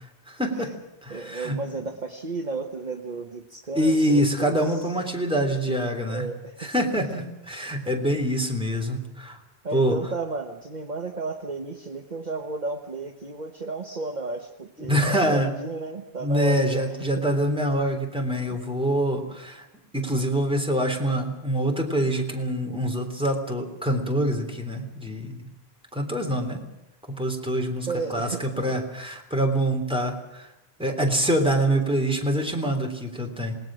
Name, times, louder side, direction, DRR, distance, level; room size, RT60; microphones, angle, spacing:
voice 1, 0.3-0.7 1.0-1.6 3.8-6.3 6.6-9.4 9.7-10.0 14.9-15.5 16.2-19.6 19.9-25.4 25.9-26.7 27.2-30.5 30.8-33.5, right 1 dB, 5° right, 2 dB, 3.5 m, -25 dB
voice 2, 1.1-5.0 5.3-7.2 9.6-17.2 18.4-18.6 27.9-28.8, right 3 dB, 45° right, 5 dB, 1.3 m, -34 dB
27.5 x 19.0 x 6.3 m, 0.91 s
omnidirectional pair, 1.1 m